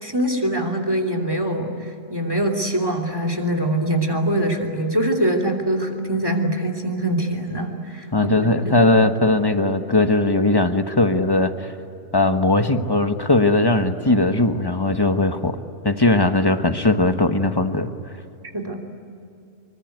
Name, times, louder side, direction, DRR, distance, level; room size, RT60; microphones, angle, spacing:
voice 1, 0.0-8.1 8.4-8.8 18.5-18.8, right 1 dB, 15° right, 5 dB, 2.9 m, -23 dB
voice 2, 8.1-11.7 12.1-15.6 15.8-17.9, left 2 dB, 20° left, 7 dB, 1.1 m, -19 dB
26.5 x 24.0 x 9.4 m, 2.7 s
omnidirectional pair, 1.3 m